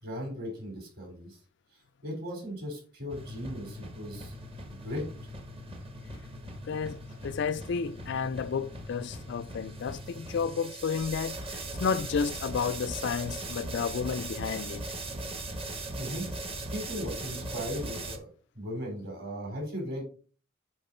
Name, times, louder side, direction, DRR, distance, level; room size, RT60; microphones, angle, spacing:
voice 1, 0.0-1.4 2.0-4.3 4.7-5.1 15.6-16.2 16.7-18.3 18.5-20.0, equal, 50° right, 3.8 m, -37 dB
sound 1, 3.1-18.2, right 2 dB, 30° right, 1.0 m, -39 dB
voice 2, 6.7-14.8, left 6 dB, 60° left, 0.4 m, -32 dB
7.9 x 3.8 x 4.3 m
head